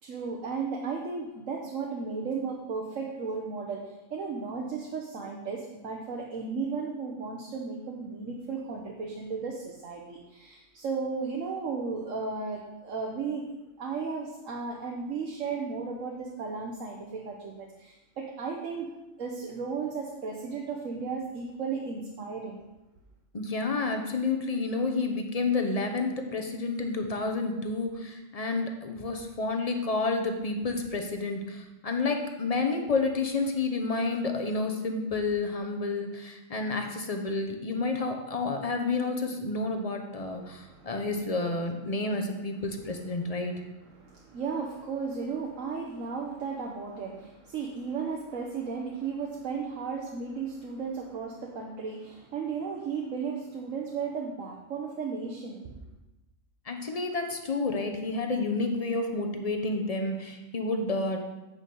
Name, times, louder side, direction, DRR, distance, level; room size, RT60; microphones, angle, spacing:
voice 1, 0.0-13.4 13.8-18.9 19.2-22.6 40.3-41.0 43.8-55.8, right 5 dB, 75° right, 0 dB, 1.4 m, -35 dB
voice 2, 23.3-43.6 56.7-61.2, left 3 dB, 30° left, 4 dB, 1.0 m, -30 dB
8.5 x 6.3 x 5.5 m, 1.0 s
omnidirectional pair, 1.4 m